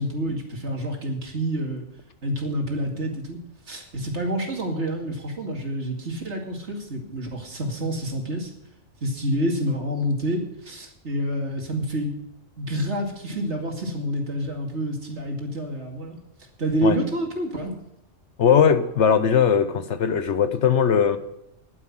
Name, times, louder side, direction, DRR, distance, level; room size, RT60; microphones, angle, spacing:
voice 1, 0.0-1.8 2.2-3.4 3.7-8.5 9.0-12.1 12.6-16.2 16.6-17.7, equal, 60° right, 2.6 m, -28 dB
voice 2, 18.4-21.2, left 7 dB, 65° left, 1.1 m, -19 dB
11.0 x 9.9 x 7.4 m
omnidirectional pair, 1.3 m